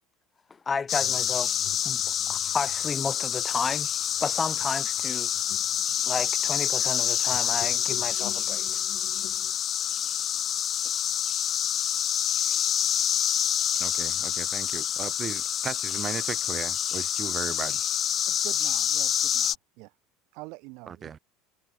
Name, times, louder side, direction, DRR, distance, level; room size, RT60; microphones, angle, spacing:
voice 1, 0.7-1.5 1.8-2.0 2.3-3.9 4.2-5.3 6.0-8.8, left 5 dB, 25° left, 0.9 m, -32 dB
sound 1, 0.9-19.6, left 10 dB, 45° left, 0.4 m, -27 dB
sound 2, 1.0-9.5, left 29 dB, 70° left, 0.7 m, -48 dB
voice 2, 13.8-17.8 20.9-21.2, right 7 dB, 35° right, 2.4 m, -36 dB
voice 3, 18.3-19.9 20.3-21.2, right 29 dB, 65° right, 1.7 m, -45 dB
hypercardioid pair, 75°, 0 cm